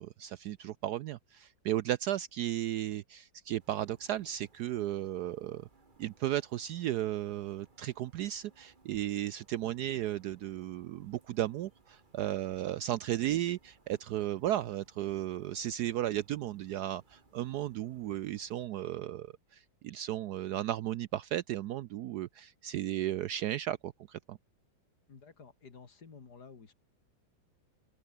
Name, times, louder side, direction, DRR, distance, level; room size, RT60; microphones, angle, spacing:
voice 1, 0.0-5.7 6.0-24.4, right 13 dB, 70° right, 1.0 m, -35 dB
sound 1, 3.6-18.7, right 3 dB, 25° right, 2.2 m, -65 dB
voice 2, 25.1-26.7, left 5 dB, 55° left, 2.9 m, -52 dB
omnidirectional pair, 2.1 m